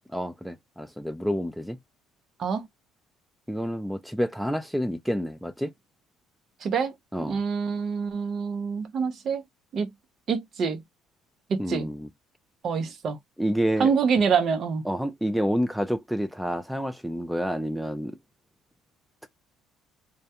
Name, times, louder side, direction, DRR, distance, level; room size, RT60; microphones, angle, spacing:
voice 1, 0.1-1.8 3.5-5.7 7.1-7.4 11.6-12.1 13.4-13.9 14.9-18.1, equal, ahead, 0.3 m, -28 dB
voice 2, 6.6-6.9 7.3-9.4 9.7-9.9 10.3-10.8 11.5-11.9 12.6-13.2 13.8-14.8, right 6 dB, 45° right, 0.6 m, -26 dB
2.2 x 2.2 x 2.8 m
cardioid pair, 125°, 0 cm